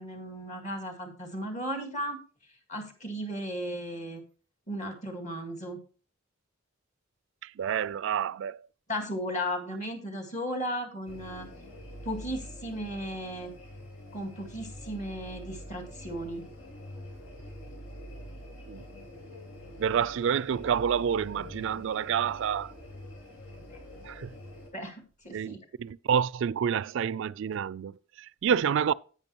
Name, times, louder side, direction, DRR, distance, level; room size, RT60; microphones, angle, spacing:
voice 1, 0.0-2.2 2.7-4.2 4.7-5.8 8.9-11.5 12.0-13.5 14.1-16.5 23.7-23.8 24.7-25.6 28.5-28.6, equal, 35° left, 2.1 m, -35 dB
voice 2, 7.4-8.7 18.7-18.8 19.8-22.7 24.0-24.3 25.3-28.9, right 8 dB, 65° right, 0.3 m, -28 dB
sound 1, 11.1-24.7, equal, 85° left, 3.4 m, -45 dB
10.5 x 8.8 x 2.9 m
head